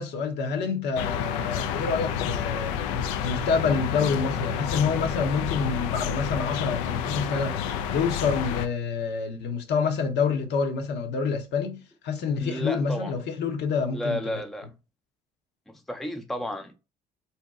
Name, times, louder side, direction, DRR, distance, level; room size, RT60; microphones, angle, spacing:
voice 1, 0.0-2.8 3.2-7.6 7.9-14.2, left 5 dB, 60° left, 0.8 m, -27 dB
sound 1, 1.0-8.7, left 8 dB, 80° left, 0.4 m, -29 dB
voice 2, 12.4-13.1 13.9-14.7 15.7-16.7, left 1 dB, ahead, 0.5 m, -32 dB
2.7 x 2.2 x 3.5 m
hypercardioid pair, 60°, 20 cm